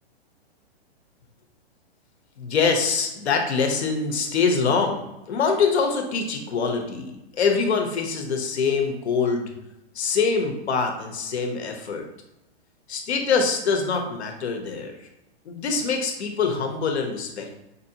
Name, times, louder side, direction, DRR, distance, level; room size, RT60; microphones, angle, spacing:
voice 1, 2.4-5.0 5.3-9.5 9.9-12.0 12.9-14.9 15.4-17.5, left 5 dB, 85° left, 4 dB, 1.0 m, -24 dB
5.1 x 2.7 x 2.8 m, 0.93 s
hypercardioid pair, 165°, 32 cm